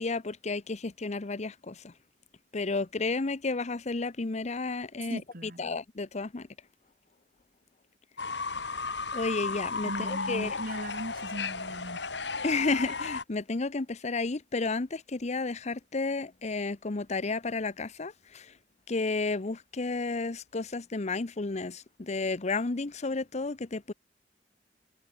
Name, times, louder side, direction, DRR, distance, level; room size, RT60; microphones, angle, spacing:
voice 1, 0.0-1.7 2.5-5.2 5.6-6.4 9.1-10.5 12.4-18.1 18.9-23.9, left 3 dB, 40° left, 0.8 m, -32 dB
voice 2, 5.1-5.7 9.8-12.0, right 1 dB, 55° right, 3.5 m, -38 dB
Fowl / Bird, 8.2-13.2, left 4 dB, 75° left, 6.3 m, -34 dB
head